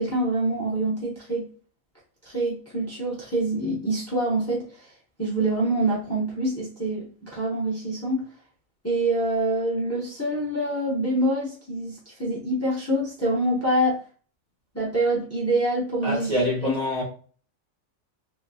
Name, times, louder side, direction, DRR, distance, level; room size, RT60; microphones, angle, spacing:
voice 1, 0.0-1.5 2.2-4.9 5.2-8.2 8.8-14.0 14.7-16.7, right 1 dB, 15° left, 0.8 m, -26 dB
voice 2, 16.0-17.0, left 1 dB, 30° right, 1.0 m, -26 dB
3.0 x 2.8 x 2.7 m
omnidirectional pair, 1.4 m